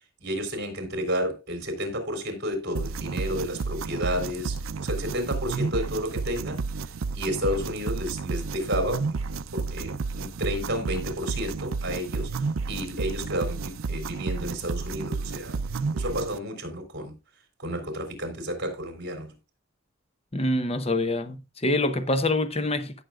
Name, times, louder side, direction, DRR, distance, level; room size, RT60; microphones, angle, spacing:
voice 1, 0.2-15.6 15.9-17.1 17.6-19.4, equal, 55° right, 3.5 m, -31 dB
sound 1, 2.7-16.4, right 4 dB, 75° right, 0.5 m, -31 dB
voice 2, 20.3-23.0, left 2 dB, 30° left, 0.9 m, -26 dB
16.5 x 6.4 x 2.3 m
head